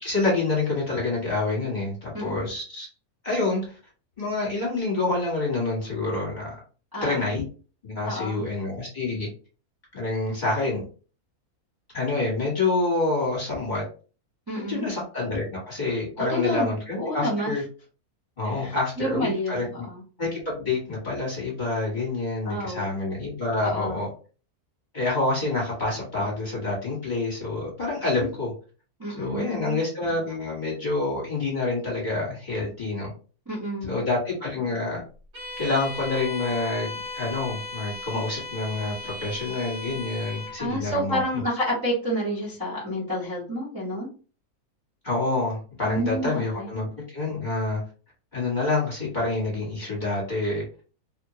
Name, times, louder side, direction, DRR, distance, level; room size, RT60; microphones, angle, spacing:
voice 1, 0.0-2.9 3.2-3.8 4.2-6.6 7.0-7.4 7.8-9.3 9.9-10.8 11.9-13.8 14.6-17.6 18.4-19.8 20.2-24.1 24.9-28.5 29.2-33.1 33.8-35.0 35.6-41.4 45.0-46.9 47.1-47.8 48.3-50.6, left 3 dB, 35° left, -5 dB, 1.2 m, -27 dB
voice 2, 2.1-2.5 6.9-7.3 8.0-8.4 14.5-14.9 16.2-16.7 17.0-17.5 18.4-20.0 22.4-22.8 23.6-24.0 29.0-29.8 33.5-34.0 40.6-44.1 45.8-46.7, equal, 15° right, -7 dB, 0.9 m, -29 dB
Bowed string instrument, 35.3-40.6, left 2 dB, 65° right, 1.6 m, -36 dB
2.9 x 2.2 x 2.8 m, 0.37 s
omnidirectional pair, 1.6 m